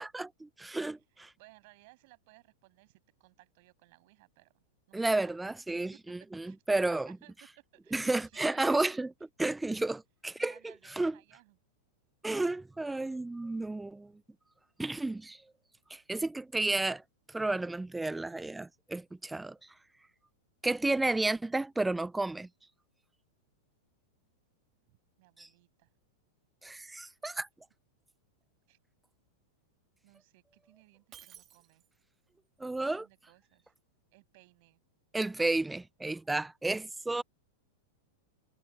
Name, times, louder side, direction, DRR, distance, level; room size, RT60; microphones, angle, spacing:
voice 1, 0.0-1.3 4.9-7.1 7.9-9.1 9.4-9.9 10.2-11.1 12.2-14.1 14.8-15.4 15.9-17.0 17.3-19.6 20.6-22.5 25.4-25.5 26.6-27.5 32.6-33.0 35.1-37.2, right 2 dB, 5° right, 0.5 m, -32 dB
voice 2, 0.6-5.5 6.1-6.2 6.4-9.0 10.3-11.6 24.9-25.9 28.7-28.8 30.0-31.8 32.7-33.7 34.1-34.8, right 25 dB, 60° right, 7.9 m, -61 dB
Shatter, 31.1-32.1, right 10 dB, 30° right, 3.2 m, -54 dB
hypercardioid pair, 120°, 0 cm